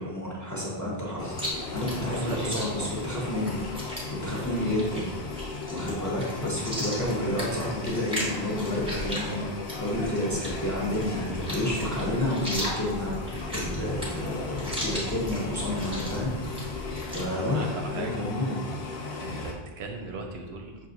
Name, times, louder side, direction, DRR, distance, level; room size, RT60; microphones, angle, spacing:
voice 1, 0.0-5.0 5.7-18.6, left 1 dB, 20° left, -5 dB, 0.6 m, -30 dB
sound 1, 1.2-19.5, left 3 dB, 80° left, 0.9 m, -36 dB
Chewing mastication, 1.3-17.3, equal, 5° right, 0.8 m, -37 dB
voice 2, 2.1-2.7 4.5-4.7 17.3-18.1 19.2-20.9, right 3 dB, 90° right, 3 dB, 0.8 m, -37 dB
sound 2, 10.3-17.0, left 1 dB, 60° left, 0.7 m, -41 dB
5.6 x 2.4 x 2.5 m, 1.2 s
omnidirectional pair, 1.1 m